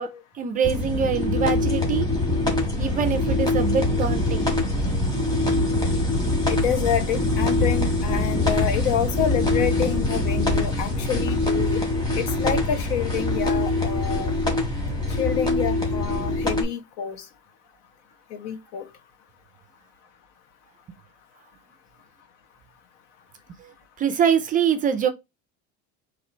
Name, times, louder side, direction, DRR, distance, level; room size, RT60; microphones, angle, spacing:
voice 1, 0.4-2.1 2.8-4.5 23.6-23.7 24.0-25.1, right 7 dB, 25° right, 0.4 m, -24 dB
sound 1, 0.6-16.6, left 2 dB, 10° left, 1.5 m, -23 dB
voice 2, 6.5-11.8 12.1-14.3 15.2-17.3 18.3-18.9, left 8 dB, 70° left, 1.2 m, -28 dB
4.3 x 2.9 x 4.3 m
cardioid pair, 160°, 32 cm